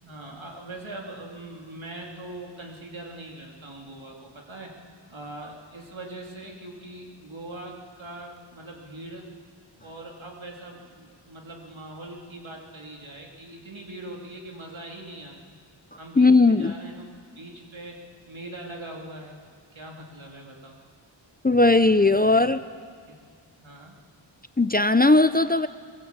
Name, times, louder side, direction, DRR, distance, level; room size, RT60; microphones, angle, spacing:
voice 1, 0.0-4.7 5.1-9.3 9.8-15.6 16.0-17.1 17.4-18.0 18.2-19.4 19.7-20.8 22.1-22.5 23.1-23.2 23.6-24.0, right 1 dB, 85° right, -1 dB, 2.9 m, -41 dB
voice 2, 16.2-16.7 21.4-22.6 24.6-25.7, left 2 dB, 20° left, 12 dB, 0.6 m, -18 dB
22.5 x 20.0 x 8.1 m, 2.1 s
wide cardioid pair, 55°, 46 cm